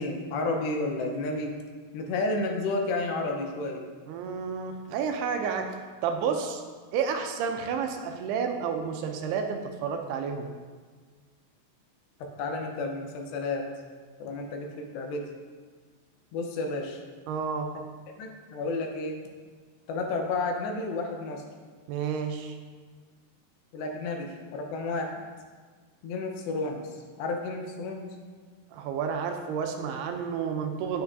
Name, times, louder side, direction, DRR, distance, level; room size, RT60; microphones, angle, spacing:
voice 1, 0.0-1.5 1.9-3.8 12.4-13.7 14.2-15.3 16.3-17.0 18.2-19.2 19.9-21.4 23.7-25.1 26.0-28.2, left 2 dB, 85° left, 2 dB, 3.2 m, -31 dB
voice 2, 4.1-5.8 6.0-6.6 6.9-10.5 17.3-17.7 21.9-22.6 28.7-31.0, right 6 dB, 85° right, 5 dB, 2.6 m, -30 dB
9.4 x 9.2 x 2.7 m, 1.5 s
omnidirectional pair, 4.8 m